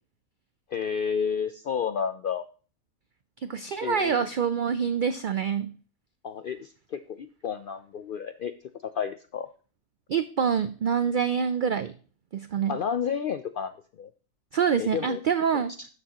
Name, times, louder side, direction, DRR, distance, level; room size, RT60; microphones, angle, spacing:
voice 1, 0.7-2.5 3.8-4.3 6.2-8.5 8.8-9.5 12.7-14.1 14.8-15.2 15.8-15.9, left 7 dB, 70° left, 10 dB, 0.5 m, -31 dB
voice 2, 3.4-5.7 10.1-11.9 12.3-12.7 14.5-15.7, right 7 dB, 80° right, 12 dB, 0.4 m, -26 dB
12.5 x 6.9 x 2.9 m, 0.39 s
omnidirectional pair, 1.4 m